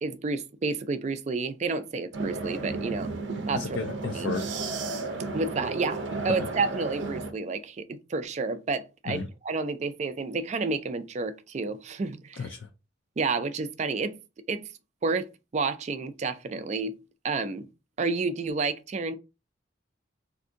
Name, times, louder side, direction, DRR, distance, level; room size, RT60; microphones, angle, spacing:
voice 1, 0.0-3.1 3.5-3.8 4.1-4.3 5.3-12.5 13.2-14.2 14.5-14.7 15.0-15.3 15.5-17.0 17.2-17.7 18.0-19.1, right 4 dB, 40° right, 0.4 m, -30 dB
sound 1, 2.1-7.3, right 3 dB, 85° right, 0.6 m, -33 dB
voice 2, 3.5-4.5 6.4-6.5 9.1-9.3 12.4-12.7, left 4 dB, 75° left, 0.4 m, -33 dB
2.6 x 2.6 x 3.6 m
head